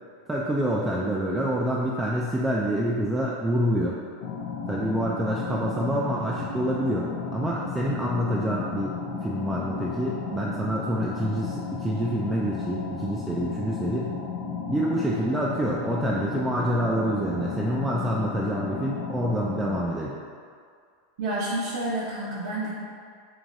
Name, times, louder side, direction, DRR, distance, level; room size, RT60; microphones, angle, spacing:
voice 1, 0.3-4.0 4.7-14.1 14.7-20.2, right 1 dB, 10° right, -5 dB, 0.3 m, -27 dB
sound 1, 4.2-19.8, left 5 dB, 75° left, 0.5 m, -34 dB
voice 2, 21.2-22.7, right 1 dB, 70° right, -7 dB, 0.7 m, -29 dB
4.7 x 3.0 x 2.6 m, 2.1 s
supercardioid pair, 140°, 0 cm